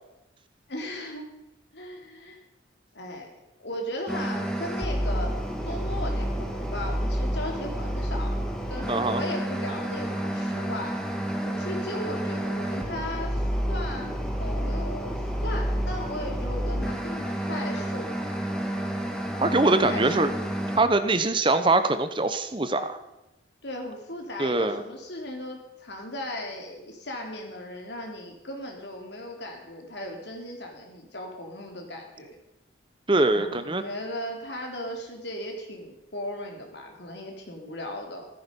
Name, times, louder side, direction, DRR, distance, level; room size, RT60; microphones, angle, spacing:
voice 1, 0.7-1.3 1.7-2.4 2.9-3.3 3.6-8.4 8.7-11.0 11.4-18.1 19.8-20.3 23.6-32.3 33.3-38.3, left 1 dB, 65° left, 2 dB, 3.4 m, -37 dB
sound 1, 4.1-20.8, equal, 5° left, 1.9 m, -29 dB
voice 2, 8.9-9.2 19.4-20.3 20.8-23.0 24.4-24.8 33.1-33.8, right 2 dB, 25° right, 10 dB, 0.8 m, -23 dB
15.0 x 13.5 x 5.3 m, 0.95 s
head